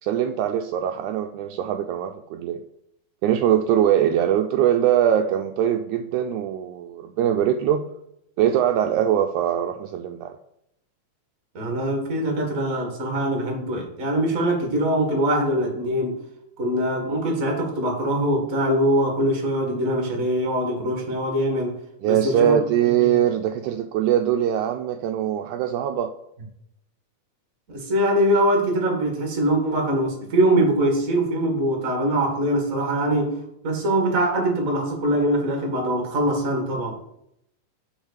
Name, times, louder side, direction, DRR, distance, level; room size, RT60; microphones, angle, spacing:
voice 1, 0.0-2.6 3.2-7.8 8.4-10.4 22.0-26.1, right 10 dB, 80° right, 5 dB, 1.9 m, -22 dB
voice 2, 11.5-16.2 16.6-21.8 22.0-22.6 23.0-23.2 27.7-33.4 33.6-37.0, right 1 dB, 30° right, 1 dB, 1.8 m, -23 dB
6.3 x 5.5 x 6.5 m, 0.77 s
omnidirectional pair, 3.7 m